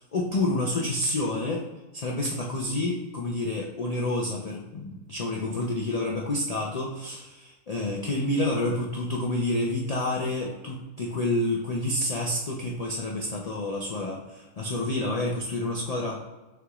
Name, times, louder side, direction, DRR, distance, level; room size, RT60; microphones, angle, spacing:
voice 1, 0.0-1.6 1.9-16.2, left 1 dB, 70° left, -2 dB, 0.3 m, -29 dB
6.6 x 2.4 x 2.9 m, 1.1 s
omnidirectional pair, 1.4 m